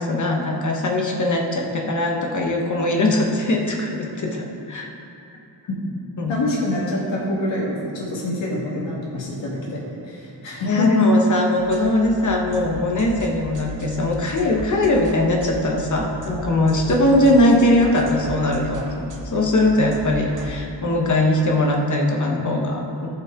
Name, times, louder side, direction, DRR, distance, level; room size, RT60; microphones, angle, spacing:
voice 1, 0.0-4.9 6.2-6.3 10.6-18.8 19.2-23.1, left 1 dB, 40° left, 0 dB, 1.3 m, -20 dB
voice 2, 6.3-10.9, left 1 dB, 90° left, -4 dB, 1.9 m, -26 dB
sound 1, 11.6-20.6, equal, 45° right, 1.2 m, -35 dB
14.5 x 5.9 x 3.8 m, 2.8 s
wide cardioid pair, 130°, 44 cm